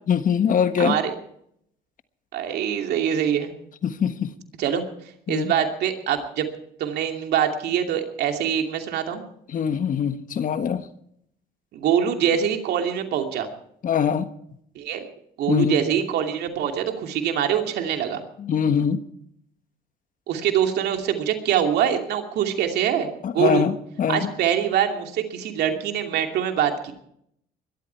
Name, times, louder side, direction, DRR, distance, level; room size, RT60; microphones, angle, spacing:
voice 1, 0.1-1.0 3.8-4.3 5.3-5.5 9.5-10.8 13.8-14.3 15.5-15.8 18.4-19.0 23.2-24.3, left 7 dB, 50° left, 10 dB, 1.4 m, -23 dB
voice 2, 0.8-1.1 2.3-3.5 4.6-4.8 5.3-6.5 6.8-9.2 11.7-13.5 14.8-15.1 15.4-18.2 20.3-23.7 24.1-26.9, right 9 dB, 75° right, 4 dB, 2.7 m, -24 dB
22.0 x 13.0 x 4.6 m, 0.71 s
supercardioid pair, 70°, 17 cm